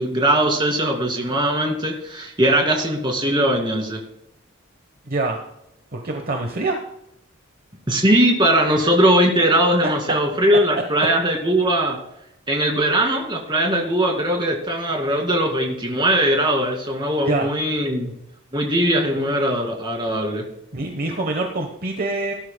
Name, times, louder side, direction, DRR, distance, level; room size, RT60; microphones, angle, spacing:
voice 1, 0.0-4.0 7.9-12.0 12.5-18.1 18.5-20.4, right 1 dB, 20° right, 1 dB, 2.2 m, -20 dB
voice 2, 5.0-5.4 5.9-6.8 17.2-17.5 20.7-22.3, right 2 dB, 45° right, 3 dB, 1.1 m, -25 dB
18.5 x 11.5 x 2.2 m, 0.80 s
head